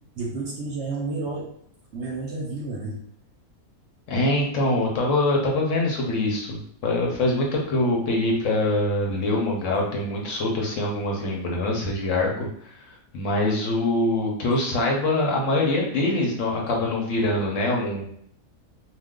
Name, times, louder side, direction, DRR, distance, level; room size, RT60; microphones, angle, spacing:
voice 1, 0.2-1.5 1.9-3.0, right 3 dB, 60° right, -2 dB, 0.8 m, -30 dB
voice 2, 4.1-12.5 12.9-18.1, left 2 dB, 65° left, -1 dB, 1.0 m, -24 dB
2.4 x 2.3 x 3.6 m, 0.67 s
omnidirectional pair, 1.5 m